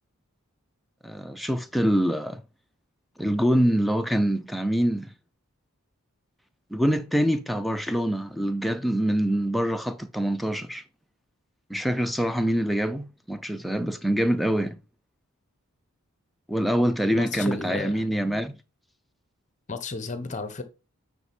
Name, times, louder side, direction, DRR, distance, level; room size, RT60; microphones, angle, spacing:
voice 1, 1.0-2.4 3.2-5.1 6.7-10.8 11.7-14.8 16.5-18.6, equal, ahead, 0.4 m, -25 dB
voice 2, 17.1-18.0 19.7-20.6, left 3 dB, 30° left, 0.8 m, -33 dB
9.1 x 3.6 x 4.2 m
head